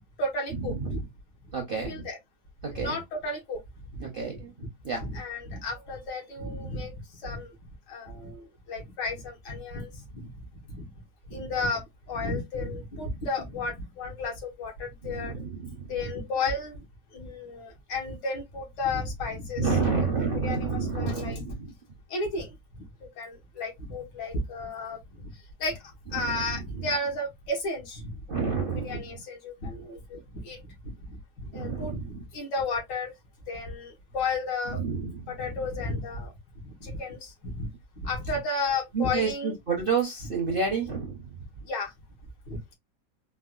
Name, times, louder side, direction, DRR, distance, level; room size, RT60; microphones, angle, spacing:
voice 1, 0.2-1.1 1.8-2.2 2.7-3.6 3.9-4.1 5.0-7.5 7.9-10.3 11.3-15.3 15.9-16.8 17.1-20.1 20.4-21.4 22.1-22.5 23.2-25.0 25.6-25.8 26.1-28.2 28.8-30.6 30.8-33.1 33.5-34.8 35.3-36.3 36.8-37.7 38.0-39.5 41.7-41.9 42.5-42.6, left 3 dB, 80° left, 1.9 m, -33 dB
voice 2, 1.5-2.0 2.6-3.0 4.0-4.5 4.8-5.0 6.6-6.7 11.3-11.4 15.0-15.8 19.6-21.6 26.2-26.4 26.8-26.9 28.3-29.0 31.5-32.1 34.8-35.3 38.9-41.1, right 5 dB, 55° right, 0.6 m, -29 dB
4.5 x 2.1 x 2.3 m
omnidirectional pair, 1.9 m